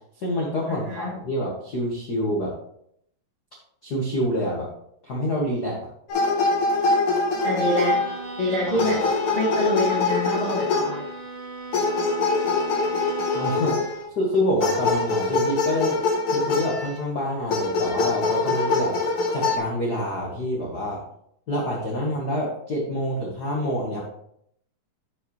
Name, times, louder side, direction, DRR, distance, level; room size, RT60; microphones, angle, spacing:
voice 1, 0.2-2.5 3.8-4.7 5.0-5.8 8.7-8.8 13.3-16.0 16.3-19.0 19.3-21.0 21.5-24.0, equal, 80° left, -3 dB, 0.9 m, -27 dB
voice 2, 0.7-1.2 7.4-8.0 8.4-11.0, equal, 20° left, -5 dB, 1.1 m, -26 dB
sound 1, 6.1-8.4 8.8-11.1 11.7-14.0 14.6-17.0 17.5-19.6, left 3 dB, 65° left, 1.4 m, -24 dB
Bowed string instrument, 7.7-13.9, right 3 dB, 65° right, 1.5 m, -37 dB
10.5 x 4.9 x 3.2 m, 0.71 s
omnidirectional pair, 4.1 m